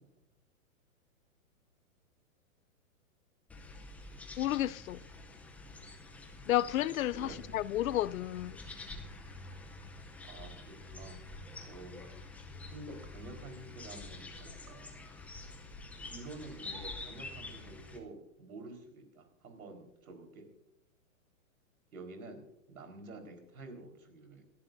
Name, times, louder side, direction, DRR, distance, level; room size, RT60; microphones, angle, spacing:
sound 1, 3.5-18.0, left 2 dB, 5° left, 0.6 m, -47 dB
voice 1, 4.4-5.0 6.5-8.6, left 13 dB, 70° left, 0.6 m, -31 dB
voice 2, 10.2-11.2 11.6-14.9 16.1-20.4 21.9-22.4 22.7-24.4, right 2 dB, 85° right, 4.4 m, -49 dB
27.5 x 11.0 x 2.6 m
hypercardioid pair, 150°, 42 cm